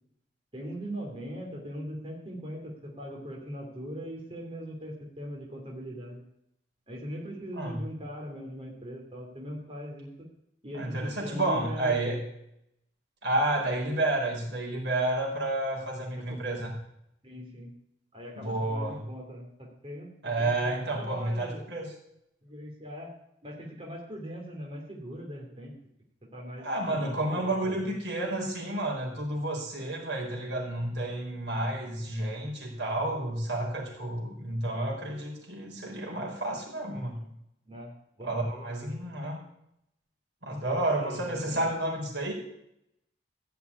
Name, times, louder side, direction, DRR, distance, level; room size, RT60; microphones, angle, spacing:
voice 1, 0.5-6.2 6.9-10.3 10.6-12.2 15.7-15.9 16.2-16.4 17.2-17.7 18.1-20.1 20.4-21.6 22.4-23.1 23.4-25.7 26.3-27.9 37.7-38.6 40.4-41.7, equal, 30° right, -1 dB, 3.1 m, -40 dB
voice 2, 10.7-12.2 13.2-16.7 18.3-19.1 20.2-21.9 26.6-37.3 38.2-39.4 40.4-42.3, right 1 dB, 80° right, -1 dB, 4.8 m, -30 dB
15.0 x 5.9 x 9.8 m, 0.77 s
head